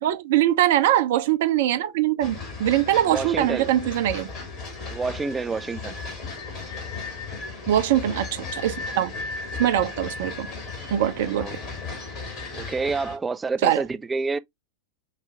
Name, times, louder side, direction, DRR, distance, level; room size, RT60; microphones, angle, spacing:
voice 1, 0.0-4.3 7.7-9.1 9.6-10.5 10.9-11.5 13.6-13.8, right 12 dB, 55° right, 0.6 m, -22 dB
sound 1, 2.2-13.2, left 4 dB, 40° left, 2.2 m, -35 dB
voice 2, 3.1-3.7 4.9-6.0 11.4-11.6 12.5-14.4, right 4 dB, 15° right, 0.4 m, -28 dB
4.9 x 2.7 x 3.3 m
figure-of-eight pair, 90°, 0 cm